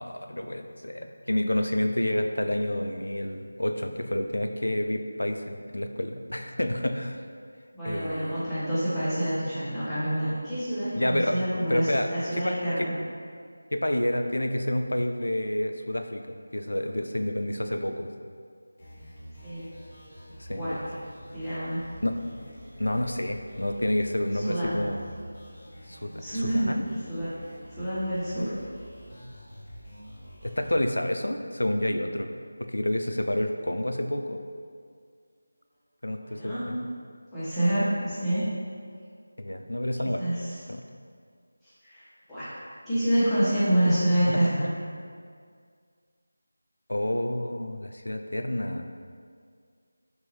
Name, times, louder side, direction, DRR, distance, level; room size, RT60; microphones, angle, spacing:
voice 1, 0.0-7.2 7.8-8.5 10.9-12.1 12.4-12.9 13.7-16.2 16.5-18.1 20.4-20.8 22.0-22.2 22.8-25.1 25.9-26.8 30.4-32.3 32.7-34.4 36.0-36.8 39.4-40.3 40.7-40.8 44.3-44.4 46.9-48.9, left 1 dB, 90° left, 6 dB, 0.3 m, -29 dB
voice 2, 7.7-12.9 19.4-19.7 20.6-20.8 21.3-21.8 24.3-24.8 26.2-26.7 27.1-27.3 27.7-28.5 36.2-36.7 37.3-38.5 40.2-40.6 41.8-42.0 42.3-42.5 42.9-44.7, right 1 dB, 5° left, -18 dB, 0.8 m, -27 dB
sound 1, 18.8-30.8, equal, 30° left, 1.1 m, -46 dB
4.4 x 2.5 x 3.1 m, 2.1 s
figure-of-eight pair, 170°, 0 cm